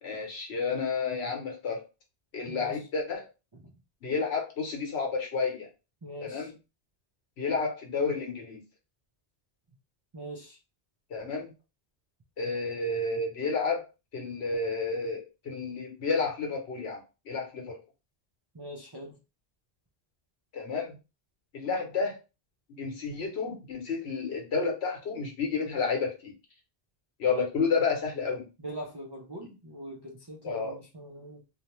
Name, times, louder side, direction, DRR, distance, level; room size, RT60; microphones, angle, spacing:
voice 1, 0.0-1.8 2.3-3.2 4.0-5.7 6.2-6.5 7.4-8.6 11.1-11.5 12.4-13.9 14.1-17.0 17.3-17.8 20.5-21.0 21.5-22.2 22.8-26.3 27.2-28.5 30.4-30.8, left 4 dB, 75° left, 1 dB, 1.1 m, -30 dB
voice 2, 2.5-2.8 3.5-3.7 6.0-6.5 10.1-10.6 18.5-19.1 28.6-31.4, right 1 dB, 40° right, -3 dB, 0.3 m, -42 dB
2.6 x 2.2 x 2.9 m, 0.29 s
omnidirectional pair, 1.1 m